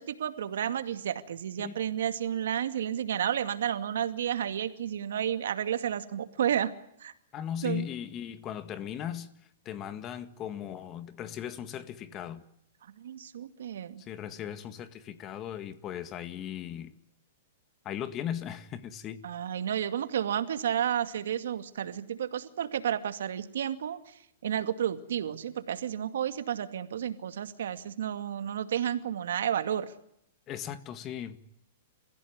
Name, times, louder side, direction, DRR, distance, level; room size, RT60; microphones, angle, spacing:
voice 1, 0.0-6.7 7.0-7.1 7.6-7.9 13.0-14.0 19.2-29.9, right 9 dB, 80° right, 2.3 m, -31 dB
voice 2, 7.3-9.3 9.7-12.4 14.0-16.9 17.9-19.2 30.5-31.4, left 10 dB, 30° left, 1.8 m, -38 dB
29.5 x 16.0 x 9.6 m
hypercardioid pair, 145°, 0 cm